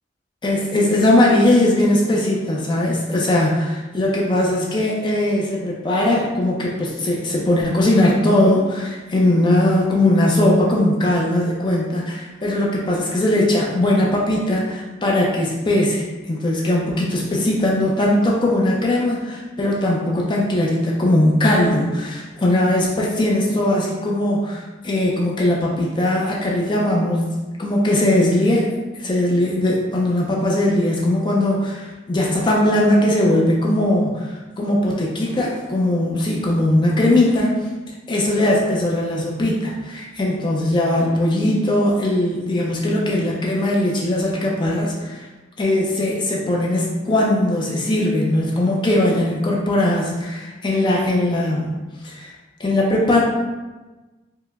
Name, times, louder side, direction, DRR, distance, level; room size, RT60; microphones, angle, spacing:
voice 1, 0.4-37.6 38.1-45.3 45.6-51.7 52.0-52.3 52.6-53.2, left 1 dB, 25° left, -3 dB, 0.4 m, -19 dB
4.5 x 2.1 x 2.3 m, 1.2 s
head